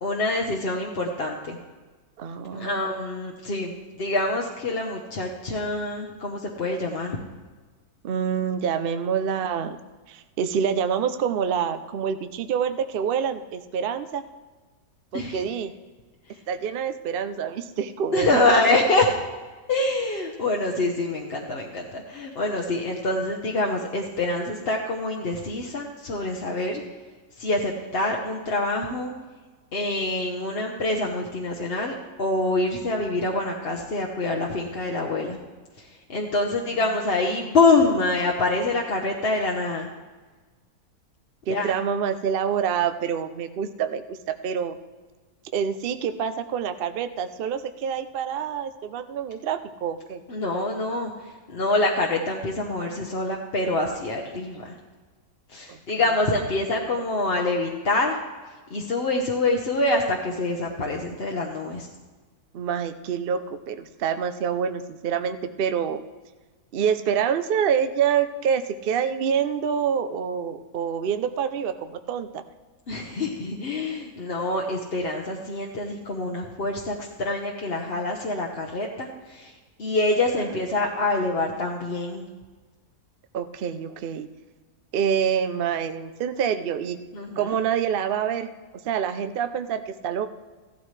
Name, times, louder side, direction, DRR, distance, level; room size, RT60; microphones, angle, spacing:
voice 1, 0.0-1.6 2.5-3.7 4.0-7.2 15.1-15.4 18.1-19.1 19.7-26.8 27.4-29.1 29.7-35.4 35.8-39.9 41.5-41.8 50.3-54.8 55.5-58.2 58.7-61.9 72.9-79.5 79.8-82.3 87.1-87.6, left 2 dB, 45° left, 0 dB, 1.0 m, -26 dB
voice 2, 2.2-2.8 8.0-9.8 10.1-14.2 15.1-15.7 16.5-18.6 36.7-36.8 41.5-44.7 45.5-50.2 55.7-55.8 62.5-66.0 66.7-72.4 83.3-84.3 84.9-87.0 87.4-88.5 88.8-90.3, right 7 dB, 65° right, 9 dB, 0.5 m, -26 dB
15.5 x 12.5 x 3.2 m, 1.3 s
omnidirectional pair, 1.7 m